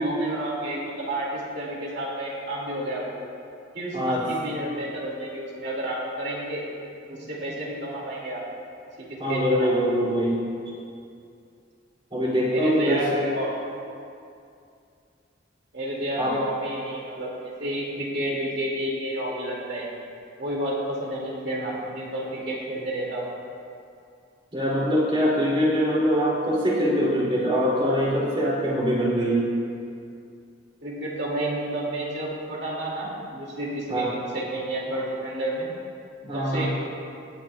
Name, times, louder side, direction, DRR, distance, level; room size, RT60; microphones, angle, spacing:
voice 1, 0.0-3.1 3.7-6.6 7.1-8.5 9.0-9.7 12.5-13.5 15.7-19.9 20.4-23.3 30.8-35.7 36.3-36.7, right 1 dB, 65° right, -4 dB, 2.3 m, -30 dB
voice 2, 3.9-4.2 9.2-10.4 10.7-10.8 12.1-13.2 16.2-16.4 24.5-29.4 33.9-34.1 36.2-36.7, equal, 30° right, -6 dB, 2.7 m, -23 dB
19.0 x 8.4 x 2.3 m, 2.5 s
head